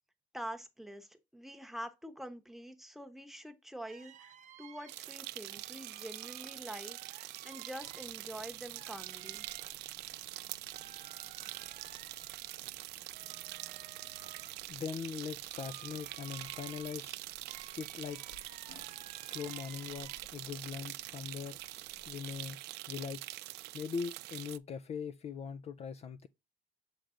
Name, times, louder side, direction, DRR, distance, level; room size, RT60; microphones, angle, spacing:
voice 1, 0.3-9.4, right 1 dB, ahead, 1.0 m, -46 dB
sound 1, 3.9-20.5 20.9-22.0, right 9 dB, 45° right, 0.7 m, -57 dB
sound 2, 4.9-24.6, right 18 dB, 80° right, 0.4 m, -45 dB
sound 3, 7.7-22.4, left 4 dB, 85° left, 2.8 m, -63 dB
voice 2, 14.7-17.2 17.8-18.2 19.2-21.6 22.1-22.6 22.9-23.2 23.7-26.3, left 6 dB, 40° left, 0.4 m, -41 dB
7.6 x 3.3 x 3.8 m
cardioid pair, 110°, 17 cm